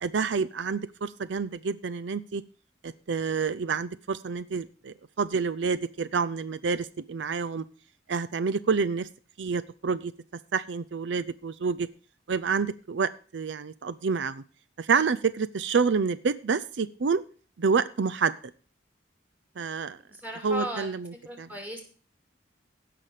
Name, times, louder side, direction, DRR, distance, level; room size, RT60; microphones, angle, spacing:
voice 1, 0.0-2.4 2.8-7.6 8.1-9.1 9.4-10.1 10.5-11.9 12.3-14.4 14.8-17.2 17.6-18.3 19.6-20.0 20.4-21.5, right 5 dB, 75° right, 14 dB, 0.5 m, -28 dB
voice 2, 20.1-20.9 21.2-21.8, right 1 dB, 10° right, 3 dB, 2.7 m, -36 dB
16.5 x 5.9 x 4.9 m, 0.40 s
head